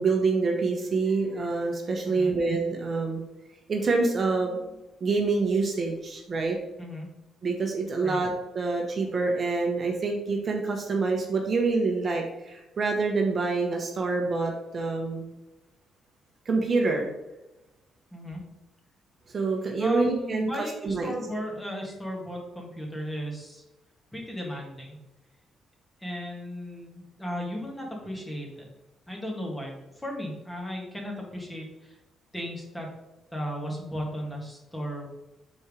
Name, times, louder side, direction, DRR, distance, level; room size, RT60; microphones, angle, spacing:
voice 1, 0.0-3.2 3.7-4.6 5.0-6.6 7.4-15.3 16.4-17.1 19.3-20.5 20.8-21.1, right 3 dB, 45° right, 1 dB, 1.2 m, -26 dB
voice 2, 19.8-23.6 24.1-25.0 26.0-28.7 29.1-32.0 32.3-32.9 33.3-35.1, equal, 10° left, -1 dB, 2.1 m, -35 dB
5.5 x 4.4 x 4.9 m, 0.99 s
cardioid pair, 90°, 0 cm